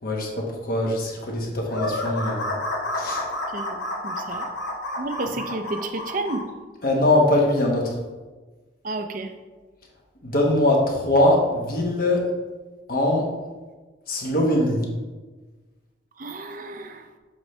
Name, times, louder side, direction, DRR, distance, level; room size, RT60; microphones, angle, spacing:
voice 1, 0.0-2.5 2.9-3.3 6.8-7.9 10.2-12.3 12.9-13.3 14.1-14.8, left 1 dB, 50° left, 0 dB, 1.3 m, -22 dB
sound 1, 1.7-6.4, left 1 dB, 70° left, 1.4 m, -30 dB
voice 2, 3.5-4.5 5.0-6.4 8.8-9.3 16.2-17.1, right 2 dB, 45° right, 7 dB, 0.5 m, -31 dB
7.2 x 5.6 x 3.2 m, 1.3 s
head